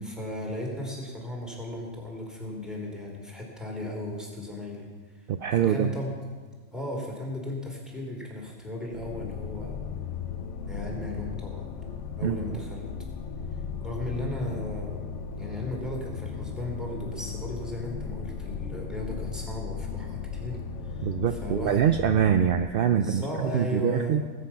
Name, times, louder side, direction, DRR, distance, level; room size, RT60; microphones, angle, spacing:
voice 1, 0.0-4.9 5.1-5.3 5.5-6.1 6.7-9.8 10.7-11.8 12.2-12.9 13.8-21.9 22.9-24.2, left 1 dB, ahead, -2 dB, 3.2 m, -36 dB
voice 2, 5.3-5.9 12.2-12.4 21.0-23.2 23.5-24.2, right 9 dB, 60° right, 9 dB, 0.6 m, -24 dB
sound 1, 8.9-22.6, left 6 dB, 65° left, 1.0 m, -36 dB
19.5 x 8.4 x 5.8 m, 1.5 s
omnidirectional pair, 1.4 m